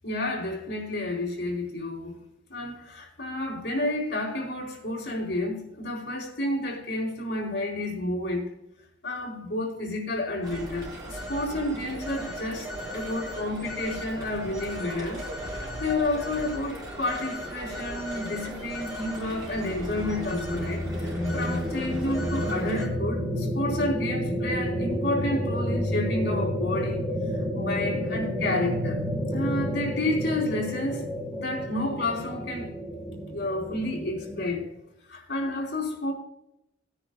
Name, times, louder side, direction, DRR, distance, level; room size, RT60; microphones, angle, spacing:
voice 1, 0.0-2.1 2.5-8.6 9.0-27.0 27.5-29.0 29.3-32.7 33.3-34.7 35.1-36.1, left 2 dB, 65° left, 4.1 m, -30 dB
Telephone, 10.4-22.9, equal, 20° right, 3.4 m, -37 dB
sound 1, 18.7-34.6, equal, 5° right, 2.9 m, -30 dB
19.5 x 9.9 x 2.3 m
head